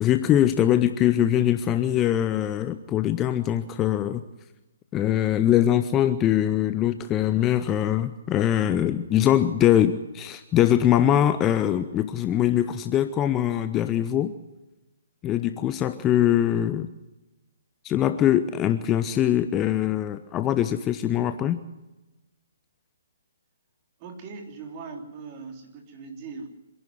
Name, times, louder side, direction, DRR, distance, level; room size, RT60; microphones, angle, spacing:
voice 1, 0.0-4.2 4.9-14.3 15.2-16.9 17.8-21.6, left 11 dB, 20° left, 11 dB, 0.7 m, -22 dB
voice 2, 24.0-26.5, right 4 dB, 30° right, 3 dB, 3.5 m, -40 dB
26.5 x 11.0 x 9.5 m, 1.1 s
figure-of-eight pair, 130°, 0 cm